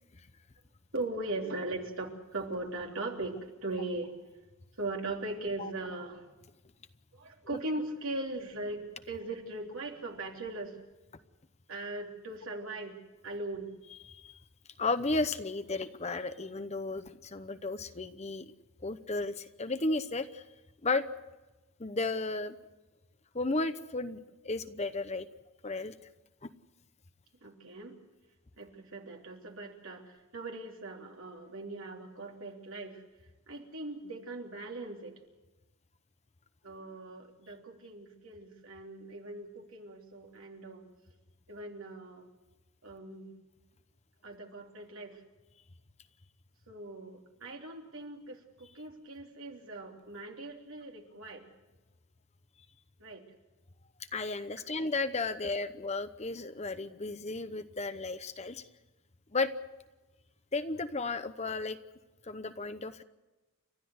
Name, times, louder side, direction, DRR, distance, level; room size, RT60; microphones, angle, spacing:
voice 1, 0.9-4.2 4.8-6.3 7.1-10.8 11.7-13.0 13.2-13.7 27.4-28.0 28.6-33.0 33.5-35.2 36.6-40.9 41.5-42.3 42.8-43.3 44.2-45.2 46.7-51.5 53.0-53.2 54.6-54.7, right 2 dB, 65° right, 1 dB, 3.3 m, -40 dB
voice 2, 14.1-14.4 14.8-18.4 18.8-20.4 20.8-21.1 21.8-22.6 23.3-24.2 24.4-25.3 25.6-25.9 26.4-26.5 54.1-58.6 59.3-59.5 60.5-61.8 62.3-63.0, left 3 dB, 30° left, 11 dB, 0.8 m, -33 dB
30.0 x 13.5 x 8.0 m, 1.1 s
head